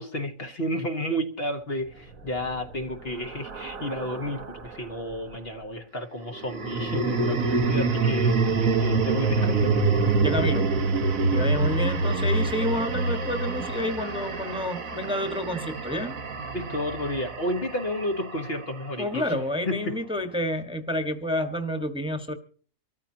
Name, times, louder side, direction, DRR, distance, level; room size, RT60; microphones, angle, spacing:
voice 1, 0.0-9.8 16.5-20.0, left 1 dB, 50° left, 1.6 m, -31 dB
sound 1, 2.2-4.7 6.4-18.6, right 3 dB, 90° right, 1.8 m, -26 dB
voice 2, 10.2-10.7 11.2-16.2 19.0-22.3, left 1 dB, 5° right, 1.4 m, -29 dB
25.0 x 14.0 x 2.8 m
omnidirectional pair, 1.4 m